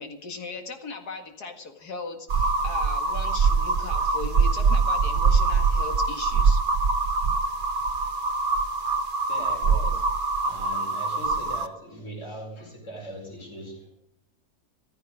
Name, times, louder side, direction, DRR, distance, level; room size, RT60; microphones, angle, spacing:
voice 1, 0.0-6.6, left 3 dB, 80° left, 4 dB, 2.6 m, -38 dB
sound 1, 2.3-11.7, right 4 dB, 65° right, 1.6 m, -23 dB
voice 2, 9.3-10.0 10.4-13.9, equal, 50° left, 0 dB, 5.1 m, -40 dB
15.0 x 14.0 x 5.0 m, 0.85 s
omnidirectional pair, 1.7 m